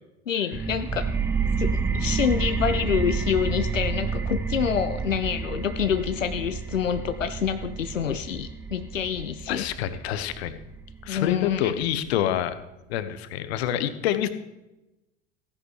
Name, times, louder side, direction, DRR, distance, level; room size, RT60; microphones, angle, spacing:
voice 1, 0.3-1.0 1.6-9.7 11.1-11.7, left 8 dB, 85° left, 10 dB, 0.5 m, -27 dB
sound 1, 0.5-11.9, right 5 dB, 5° right, 0.5 m, -30 dB
voice 2, 9.5-10.6 11.0-12.6 12.9-14.3, left 11 dB, 55° left, 12 dB, 1.0 m, -27 dB
15.5 x 10.5 x 3.4 m, 0.98 s
figure-of-eight pair, 80°, 38 cm